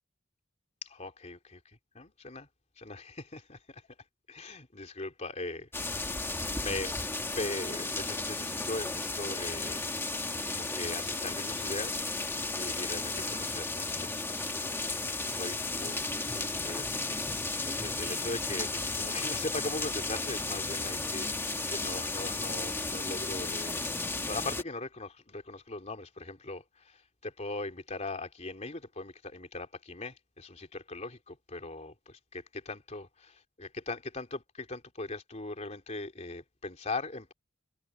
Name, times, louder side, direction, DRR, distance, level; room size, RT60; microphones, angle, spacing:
voice 1, 0.8-2.5 2.8-3.9 4.3-6.0 6.5-9.8 10.5-15.0 15.3-23.9 24.3-37.3, left 2 dB, 35° left, 3.3 m, -40 dB
sound 1, 5.7-24.6, left 3 dB, 10° left, 1.3 m, -34 dB
head